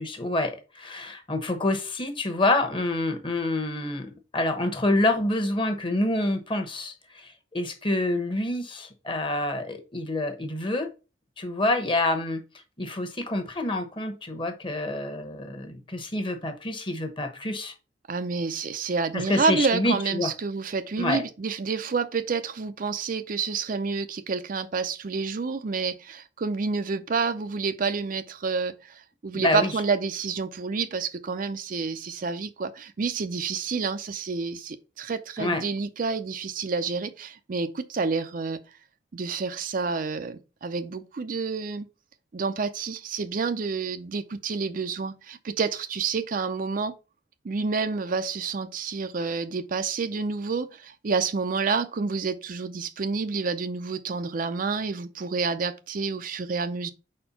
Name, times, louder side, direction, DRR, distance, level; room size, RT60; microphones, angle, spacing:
voice 1, 0.0-10.9 11.4-12.4 12.8-17.7 19.1-20.3 21.0-21.2 29.3-29.7 35.4-35.6, left 2 dB, 25° left, 1.1 m, -27 dB
voice 2, 18.1-38.6 39.1-41.9 42.3-46.9 47.4-56.9, right 4 dB, 45° right, 0.5 m, -29 dB
4.5 x 4.4 x 5.6 m
head